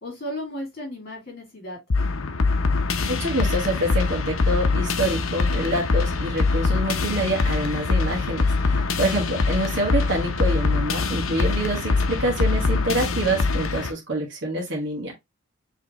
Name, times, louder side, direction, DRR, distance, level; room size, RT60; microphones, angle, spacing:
voice 1, 0.0-1.8 8.6-8.9, left 1 dB, 45° left, 2.5 m, -35 dB
sound 1, 1.9-13.9, left 3 dB, 70° left, 0.7 m, -23 dB
voice 2, 3.1-15.1, right 1 dB, 55° right, 1.6 m, -26 dB
5.0 x 3.4 x 2.9 m
head